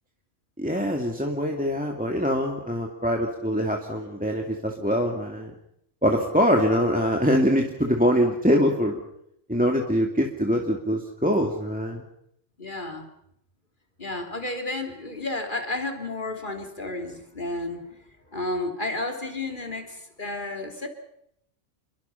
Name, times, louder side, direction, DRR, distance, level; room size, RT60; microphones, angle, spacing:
voice 1, 0.6-5.5 6.0-9.0 9.5-12.0, equal, 5° right, 1 dB, 2.4 m, -23 dB
voice 2, 12.6-13.1 14.0-20.9, left 2 dB, 40° left, 4 dB, 3.4 m, -32 dB
29.0 x 22.5 x 5.8 m, 0.75 s
omnidirectional pair, 1.2 m